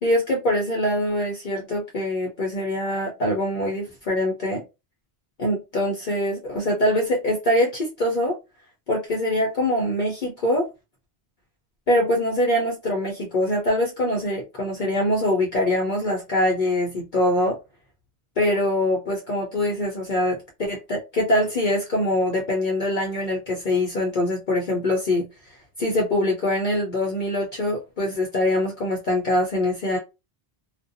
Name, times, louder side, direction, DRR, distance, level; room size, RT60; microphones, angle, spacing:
voice 1, 0.0-4.6 5.4-8.3 8.9-10.6 11.9-17.6 18.4-25.3 25.8-30.0, left 1 dB, 55° left, 0.7 m, -23 dB
2.4 x 2.2 x 2.6 m
omnidirectional pair, 1.1 m